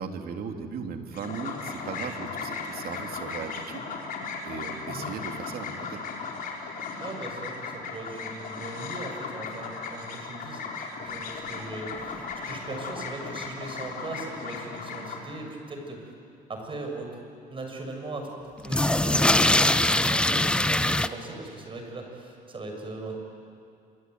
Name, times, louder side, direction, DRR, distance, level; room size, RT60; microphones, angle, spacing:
voice 1, 0.0-3.8 4.4-6.0, right 6 dB, 60° right, 4 dB, 2.8 m, -37 dB
sound 1, 1.1-15.2, left 4 dB, 55° left, 4.8 m, -36 dB
voice 2, 7.0-16.1 16.5-17.2 17.5-23.1, right 2 dB, 30° right, 3 dB, 6.6 m, -39 dB
sound 2, 11.6-11.7 11.9-12.0 12.2-12.3 13.0-13.1 18.6-21.1, left 1 dB, 5° left, 0.7 m, -22 dB
26.5 x 24.0 x 9.3 m, 2.4 s
cardioid pair, 110°, 17 cm